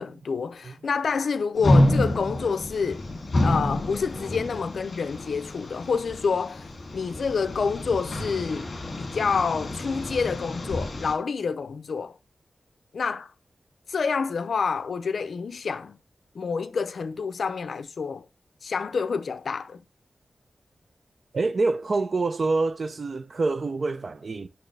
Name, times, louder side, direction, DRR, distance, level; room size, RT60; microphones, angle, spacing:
voice 1, 0.0-3.0 3.4-8.7 9.0-12.2 12.9-13.3 13.9-16.0 16.3-18.2 18.6-19.8, left 5 dB, 65° left, 0.6 m, -28 dB
sound 1, 1.6-11.1, left 1 dB, 40° left, 2.5 m, -28 dB
voice 2, 21.3-24.5, right 3 dB, 45° right, 0.5 m, -26 dB
8.7 x 6.8 x 3.3 m
wide cardioid pair, 175°, 0 cm